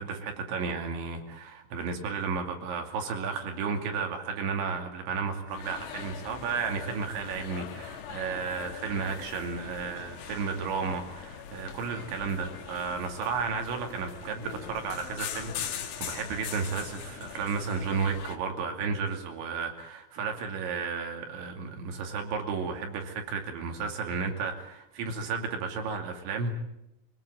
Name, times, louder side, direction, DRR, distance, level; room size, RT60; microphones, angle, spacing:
voice 1, 0.0-26.5, right 5 dB, 65° right, 4 dB, 4.7 m, -33 dB
sound 1, 5.5-18.4, left 8 dB, 65° left, 3.4 m, -41 dB
25.5 x 18.0 x 9.1 m, 0.87 s
omnidirectional pair, 5.9 m